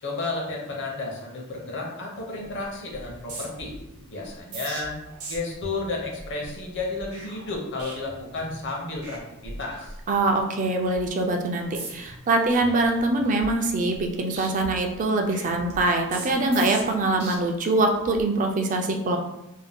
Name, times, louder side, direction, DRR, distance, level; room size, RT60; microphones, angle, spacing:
voice 1, 0.0-3.7 4.1-5.0 5.3-9.9, left 3 dB, 60° left, -1 dB, 0.7 m, -32 dB
sound 1, 2.4-2.6 2.9-8.6 8.9-9.2 9.4-10.4 10.8-11.1 11.6-12.2 12.6-14.1 14.3-17.3 17.9-18.2, right 2 dB, 90° right, 0.8 m, -41 dB
voice 2, 10.1-19.2, right 2 dB, 35° right, 3 dB, 0.3 m, -23 dB
2.7 x 2.1 x 3.4 m, 0.89 s
head